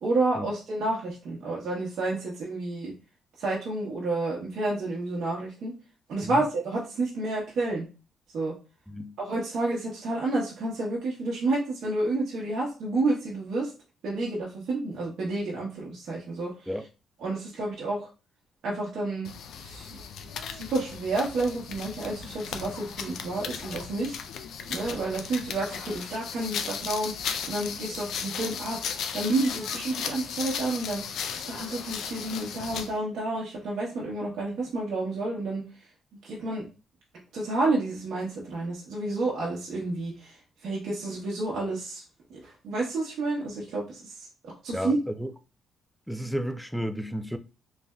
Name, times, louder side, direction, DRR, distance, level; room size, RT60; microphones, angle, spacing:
voice 1, 0.0-2.9 3.4-5.7 6.1-7.9 8.3-8.5 9.2-13.7 14.0-16.7 17.2-18.1 18.6-20.0 20.5-24.2 24.7-27.1 27.5-35.6 36.2-36.6 37.3-42.0 42.3-45.0, right 2 dB, 70° right, 1.0 m, -30 dB
sound 1, 19.2-33.0, left 7 dB, 75° left, 0.3 m, -36 dB
voice 2, 44.7-45.3 46.1-47.4, equal, ahead, 0.3 m, -32 dB
3.2 x 2.6 x 2.3 m
cardioid pair, 90°, 0 cm